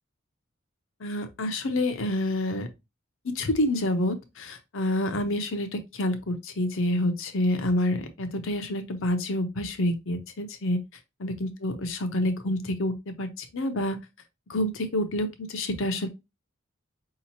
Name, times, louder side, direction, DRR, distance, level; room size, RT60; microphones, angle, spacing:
voice 1, 1.0-2.7 3.3-10.8 11.2-14.0 14.5-16.1, left 1 dB, 65° left, 0.7 m, -28 dB
4.9 x 2.9 x 2.8 m
head